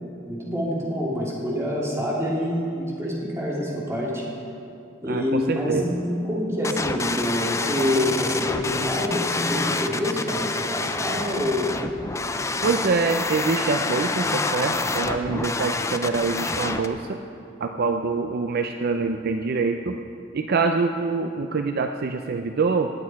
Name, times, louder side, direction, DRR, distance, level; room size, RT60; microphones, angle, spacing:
voice 1, 0.2-4.2 5.0-11.7, left 1 dB, 15° right, -5 dB, 2.7 m, -26 dB
voice 2, 5.1-5.9 7.8-7.9 12.6-17.2 17.6-20.0 20.3-22.9, right 4 dB, 55° right, 5 dB, 0.5 m, -25 dB
sound 1, 6.6-16.9, left 3 dB, 15° left, 0.4 m, -27 dB
18.5 x 7.6 x 4.7 m, 2.6 s
head